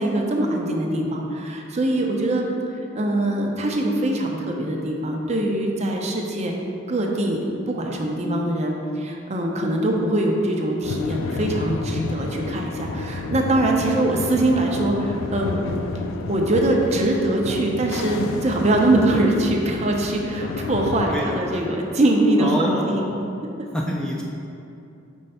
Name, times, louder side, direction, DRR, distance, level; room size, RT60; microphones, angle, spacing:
voice 1, 0.0-2.4 2.9-6.5 6.9-7.4 7.7-15.8 16.3-23.0, right 1 dB, 35° right, 0 dB, 0.6 m, -22 dB
sound 1, 10.8-21.4, left 3 dB, 80° left, 0.3 m, -30 dB
voice 2, 21.1-21.6 22.4-23.2 23.7-24.2, equal, 5° left, -3 dB, 0.4 m, -27 dB
5.4 x 3.2 x 5.5 m, 2.7 s
head